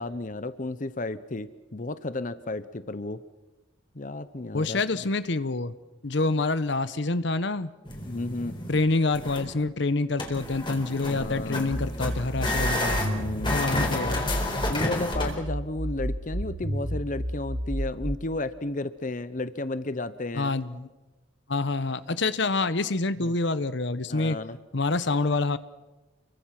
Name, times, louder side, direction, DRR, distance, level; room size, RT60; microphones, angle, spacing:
voice 1, 0.0-3.2 3.9-5.0 8.0-8.5 11.1-11.7 13.0-13.6 14.7-20.5 23.2-23.3 24.1-24.6, left 2 dB, 40° left, 13 dB, 0.8 m, -33 dB
voice 2, 4.5-5.7 6.0-7.7 8.7-13.1 13.5-14.2 20.3-20.9 21.5-24.4 24.7-25.6, left 3 dB, 60° left, 14 dB, 0.9 m, -27 dB
sound 1, 7.8-8.8 9.1-9.5 10.2-15.3, left 1 dB, 25° left, 4.1 m, -31 dB
sound 2, 11.7-14.7 15.1-18.2, equal, 50° right, 1.6 m, -31 dB
30.0 x 23.5 x 6.0 m, 1.1 s
head